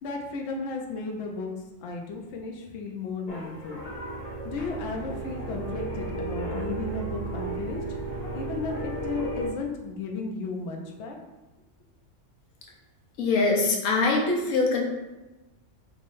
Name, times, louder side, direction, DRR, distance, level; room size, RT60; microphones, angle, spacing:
voice 1, 0.0-1.5 1.8-3.8 4.4-7.8 8.3-11.2, left 3 dB, 65° left, 1 dB, 0.9 m, -34 dB
sound 1, 3.3-9.5, right 2 dB, 40° left, 0.6 m, -34 dB
voice 2, 13.2-14.8, left 3 dB, 90° left, -1 dB, 1.2 m, -23 dB
5.4 x 3.1 x 2.5 m, 1.1 s
omnidirectional pair, 1.3 m